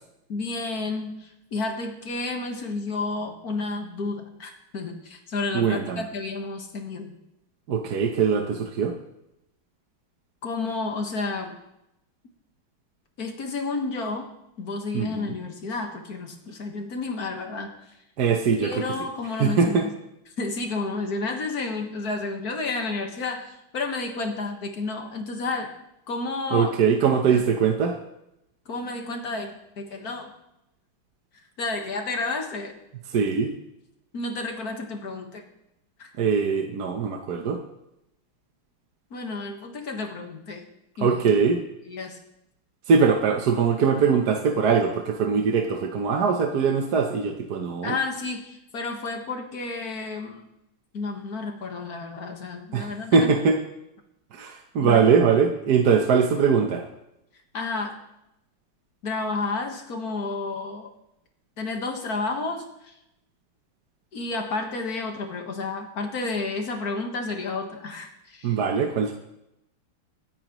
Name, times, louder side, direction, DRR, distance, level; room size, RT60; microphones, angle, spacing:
voice 1, 0.3-7.1 10.4-11.6 13.2-14.3 14.6-17.7 18.6-19.9 20.4-25.7 26.1-26.7 27.3-27.4 28.7-30.3 31.6-32.7 34.1-35.5 36.0-36.1 39.1-40.7 41.0-41.2 41.9-42.2 47.8-50.5 50.9-53.3 54.8-55.0 57.5-58.0 59.0-60.9 61.6-62.9 64.1-68.6, left 3 dB, 50° left, 3 dB, 1.9 m, -31 dB
voice 2, 5.5-6.0 7.7-8.9 14.9-15.4 18.2-18.9 19.4-19.9 26.5-28.0 33.1-33.5 36.2-37.6 41.0-41.6 42.9-48.0 52.7-53.6 54.3-56.8 68.4-69.1, right 6 dB, 55° right, 3 dB, 1.3 m, -22 dB
26.0 x 9.1 x 3.1 m, 0.86 s
omnidirectional pair, 2.3 m